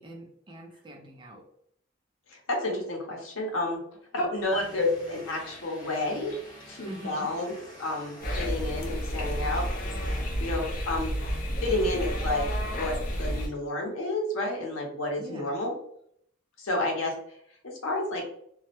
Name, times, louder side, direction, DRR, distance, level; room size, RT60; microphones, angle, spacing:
voice 1, 0.0-1.4 4.2-4.3 6.8-7.3 11.6-11.8 15.2-15.6, equal, 25° right, 1 dB, 0.4 m, -44 dB
voice 2, 2.3-3.8 4.1-6.4 6.7-7.5 7.8-9.6 10.4-11.1 11.6-15.7 16.6-17.2 17.6-18.2, left 2 dB, 85° left, 0 dB, 0.7 m, -30 dB
sound 1, 4.5-10.3, equal, 20° left, 0.8 m, -47 dB
sound 2, 8.2-13.5, equal, 45° left, 0.4 m, -31 dB
2.2 x 2.0 x 2.8 m, 0.68 s
head